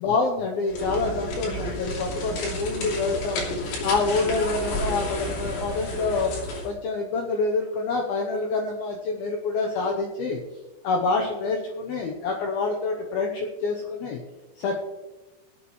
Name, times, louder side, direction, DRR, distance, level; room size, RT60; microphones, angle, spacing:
voice 1, 0.0-3.4 3.8-6.3 6.6-10.4 10.8-14.2 14.6-14.8, left 3 dB, 85° left, 1 dB, 2.1 m, -27 dB
sound 1, 0.7-6.7, left 1 dB, 65° left, 5.0 m, -31 dB
22.0 x 8.4 x 3.2 m, 1.2 s
omnidirectional pair, 5.7 m